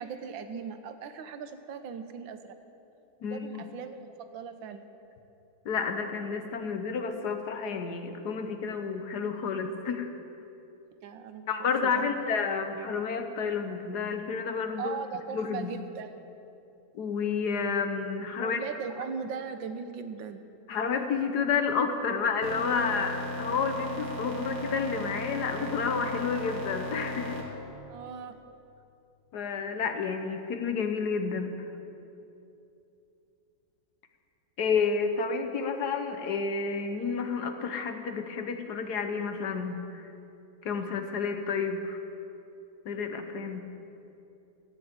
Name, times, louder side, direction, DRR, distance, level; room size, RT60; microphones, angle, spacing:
voice 1, 0.0-2.5 3.2-4.9 11.0-11.5 11.8-12.2 14.8-16.1 18.4-20.4 27.9-28.3, right 6 dB, 85° right, 9 dB, 1.6 m, -39 dB
voice 2, 3.2-3.7 5.6-10.1 11.5-14.9 15.3-15.7 16.9-18.6 20.7-27.4 29.3-31.6 34.6-40.1 40.6-42.0 42.8-43.6, left 5 dB, 65° left, 6 dB, 1.4 m, -30 dB
sound 1, 22.4-27.4, left 1 dB, 60° right, 2.2 m, -36 dB
13.5 x 7.9 x 8.7 m, 2.8 s
omnidirectional pair, 2.0 m